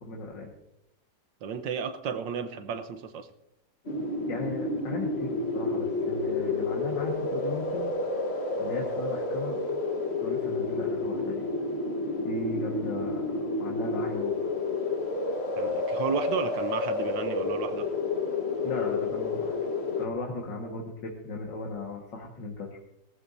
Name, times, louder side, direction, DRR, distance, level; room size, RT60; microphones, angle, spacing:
voice 1, 0.0-0.5 4.3-7.9 8.6-9.6 10.2-11.5 12.2-14.4 18.6-19.6 20.0-22.8, left 3 dB, 70° left, -1 dB, 2.4 m, -36 dB
voice 2, 1.4-3.3 15.6-17.9, right 6 dB, 75° right, 9 dB, 1.6 m, -33 dB
sound 1, 3.9-20.1, left 3 dB, 40° left, 1.5 m, -30 dB
18.5 x 14.0 x 2.7 m, 0.82 s
omnidirectional pair, 2.0 m